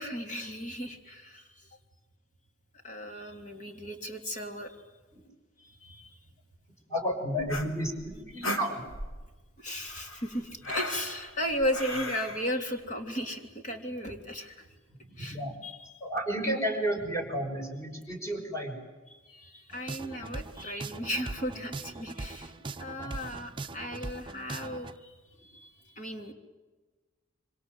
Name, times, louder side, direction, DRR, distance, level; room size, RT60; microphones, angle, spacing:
voice 1, 0.0-1.4 2.8-4.8 5.6-6.1 9.6-14.7 15.2-15.4 15.6-15.7 19.3-22.5 22.8-25.2 25.4-26.3, equal, 40° left, 3 dB, 3.4 m, -35 dB
voice 2, 6.9-8.8 14.9-15.6 16.0-18.8 22.4-22.5 22.9-23.3, equal, 15° left, 3 dB, 5.9 m, -32 dB
sound 1, 7.4-9.2 9.8-12.5, left 1 dB, 70° left, 3.8 m, -37 dB
sound 2, 19.7-24.9, right 2 dB, 25° right, 0.8 m, -40 dB
27.0 x 26.0 x 8.0 m, 1.2 s
head